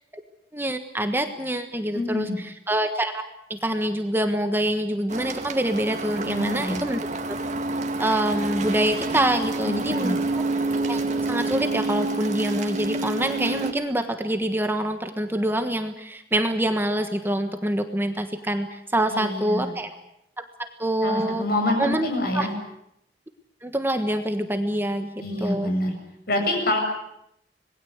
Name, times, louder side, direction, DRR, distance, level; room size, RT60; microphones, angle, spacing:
voice 1, 0.5-3.2 3.5-7.0 7.3-7.4 8.0-10.4 10.9-11.0 11.3-19.9 20.8-21.4 21.8-22.1 22.3-22.5 23.6-25.1 25.4-25.7, right 1 dB, 15° right, 7 dB, 1.4 m, -25 dB
voice 2, 1.9-2.4 6.3-6.8 9.6-10.2 19.1-19.7 21.0-22.5 25.2-25.9 26.3-26.8, left 1 dB, 60° left, 3 dB, 7.6 m, -26 dB
sound 1, 5.1-13.7, right 2 dB, 40° right, 2.1 m, -28 dB
26.5 x 20.5 x 8.2 m, 0.78 s
head